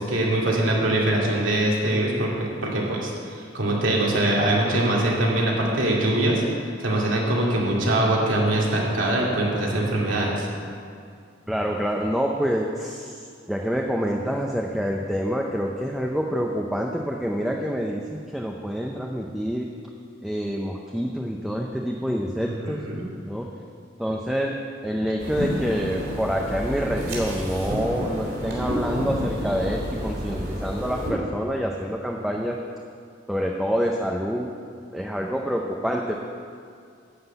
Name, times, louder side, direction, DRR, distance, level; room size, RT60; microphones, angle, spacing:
voice 1, 0.0-6.4 6.8-10.5 22.4-23.1, right 1 dB, 85° right, -3 dB, 2.4 m, -23 dB
voice 2, 11.5-13.2 13.5-19.7 20.2-22.8 23.2-23.5 24.0-24.5 24.8-32.6 33.3-34.5 34.9-36.2, equal, ahead, 0 dB, 0.6 m, -27 dB
sound 1, 25.2-31.1, equal, 55° right, 3.3 m, -30 dB
11.0 x 5.9 x 8.0 m, 2.3 s
head